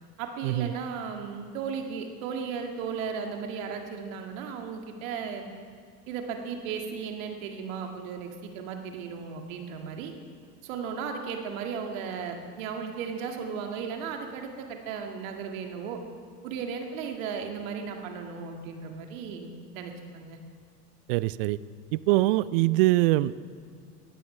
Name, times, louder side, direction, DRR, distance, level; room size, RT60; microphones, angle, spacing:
voice 1, 0.2-5.5 6.1-10.1 10.6-16.0 16.4-20.4, right 6 dB, 55° right, 3 dB, 2.0 m, -35 dB
voice 2, 21.1-21.6 21.9-23.4, right 18 dB, 40° right, 19 dB, 0.4 m, -23 dB
20.5 x 15.5 x 3.3 m, 2.2 s
figure-of-eight pair, 80°, 47 cm